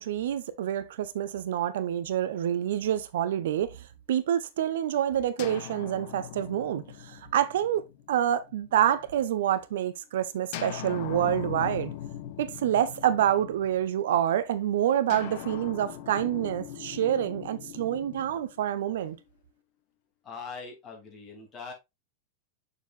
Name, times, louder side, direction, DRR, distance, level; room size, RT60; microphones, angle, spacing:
voice 1, 0.0-11.9 12.4-19.2, right 10 dB, 60° right, 0.6 m, -27 dB
sound 1, 5.4-9.2 10.5-14.1 15.1-19.2, left 11 dB, 50° left, 0.8 m, -41 dB
voice 2, 20.2-21.7, left 5 dB, 25° left, 3.1 m, -41 dB
6.9 x 6.7 x 2.5 m
figure-of-eight pair, 90°, 0 cm